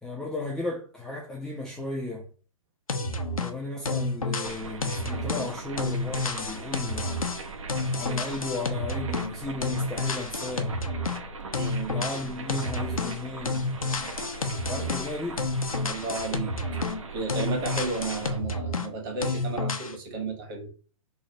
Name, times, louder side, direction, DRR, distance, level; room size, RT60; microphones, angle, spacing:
voice 1, 0.0-2.3 3.4-7.3 8.0-10.7 11.9-13.7 14.7-15.5, left 2 dB, 5° left, 0.5 m, -35 dB
sound 1, 2.9-3.6 3.9-9.4 9.6-11.2 11.5-13.2 13.5-17.0 17.3-18.9 19.2-19.9, left 2 dB, 80° left, 0.7 m, -30 dB
sound 2, 4.4-18.4, right 4 dB, 65° right, 0.9 m, -40 dB
voice 2, 11.5-12.0 15.8-20.7, right 3 dB, 40° right, 1.4 m, -33 dB
3.3 x 2.3 x 4.0 m
figure-of-eight pair, 120°, 18 cm